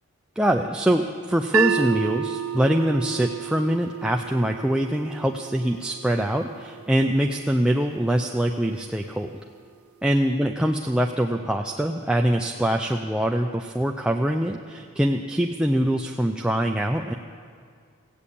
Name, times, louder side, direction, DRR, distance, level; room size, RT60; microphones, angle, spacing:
voice 1, 0.4-9.4 10.0-17.1, equal, 5° right, 2 dB, 0.3 m, -24 dB
sound 1, 1.5-7.7, right 8 dB, 75° right, 0.5 m, -31 dB
16.0 x 8.6 x 8.4 m, 2.1 s
head